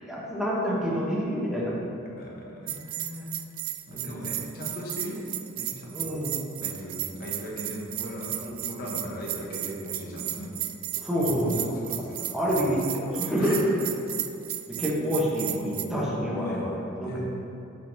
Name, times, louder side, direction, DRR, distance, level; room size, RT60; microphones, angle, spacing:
voice 1, 0.0-1.8 3.9-4.2 5.9-6.3 8.4-8.5 10.9-11.8 12.3-13.6 14.7-17.2, equal, ahead, -7 dB, 1.1 m, -28 dB
voice 2, 2.0-3.3 3.9-5.2 5.6-6.2 6.6-10.5 11.1-11.3 11.7-12.6 13.4-13.6 16.3-16.6 16.9-17.2, equal, 45° left, -3 dB, 1.1 m, -39 dB
Bell, 2.7-15.8, right 13 dB, 65° right, 0.3 m, -34 dB
5.2 x 4.0 x 5.9 m, 2.7 s
head